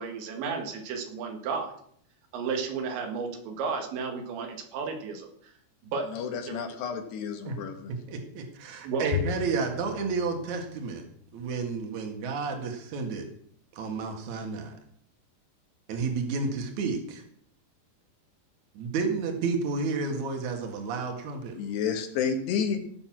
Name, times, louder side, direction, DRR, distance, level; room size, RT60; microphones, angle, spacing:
voice 1, 0.0-1.7 2.3-5.5 5.9-6.1 6.5-6.6 8.8-9.1, right 5 dB, 75° right, 4 dB, 4.1 m, -33 dB
voice 2, 6.1-7.9 21.6-22.8, left 6 dB, 70° left, 5 dB, 3.5 m, -30 dB
voice 3, 7.9-11.0 11.3-13.3 13.7-14.7 15.9-17.2 18.7-21.6, right 4 dB, 50° right, 4 dB, 2.8 m, -31 dB
Bowed string instrument, 9.1-11.7, left 12 dB, 90° left, 3.2 m, -37 dB
17.5 x 6.9 x 6.2 m, 0.65 s
omnidirectional pair, 5.2 m